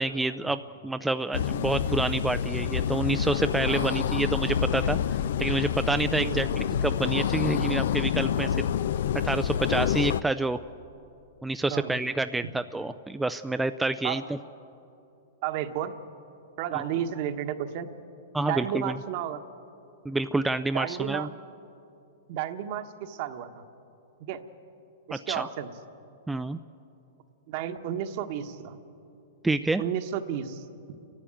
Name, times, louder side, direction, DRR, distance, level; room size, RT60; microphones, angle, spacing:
voice 1, 0.0-8.7 9.2-10.6 11.4-14.4 18.3-18.9 20.0-21.3 25.1-25.5 26.3-26.6 29.4-29.8, right 2 dB, 5° right, 9 dB, 0.4 m, -28 dB
sound 1, 1.3-10.2, left 9 dB, 70° left, 0.5 m, -27 dB
voice 2, 3.7-4.0 6.2-6.4 11.7-12.0 14.0-14.2 15.4-15.9 16.6-17.9 18.4-19.4 20.7-21.3 22.3-23.6 24.3-24.4 25.1-25.7 27.5-28.8 29.8-30.7, right 10 dB, 50° right, 8 dB, 1.3 m, -32 dB
29.0 x 11.5 x 9.0 m, 2.7 s
hypercardioid pair, 130°, 0 cm